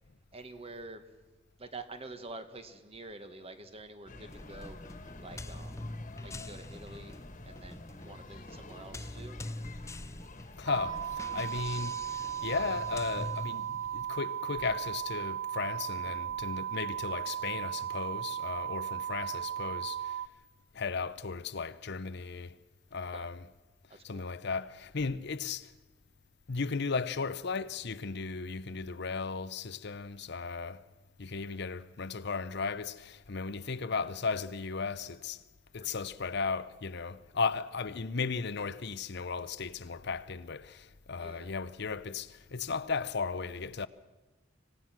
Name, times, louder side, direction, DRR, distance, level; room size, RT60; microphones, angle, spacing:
voice 1, 0.3-1.0 1.6-4.8 5.2-5.9 6.2-7.1 7.4-9.4 23.1-23.3 24.1-24.2 33.7-33.9 35.8-36.1 41.2-41.5, right 2 dB, 30° right, 1.8 m, -47 dB
sound 1, 4.1-13.3, left 2 dB, 40° left, 1.8 m, -48 dB
sound 2, 4.3-14.2, left 2 dB, 15° left, 0.6 m, -45 dB
voice 2, 10.6-20.2 20.7-22.6 22.9-23.4 24.0-25.7 26.5-30.8 31.2-35.4 35.7-43.9, left 4 dB, 60° left, 0.7 m, -35 dB
sound 3, 10.7-20.3, right 10 dB, 80° right, 0.6 m, -36 dB
26.0 x 17.5 x 6.1 m
head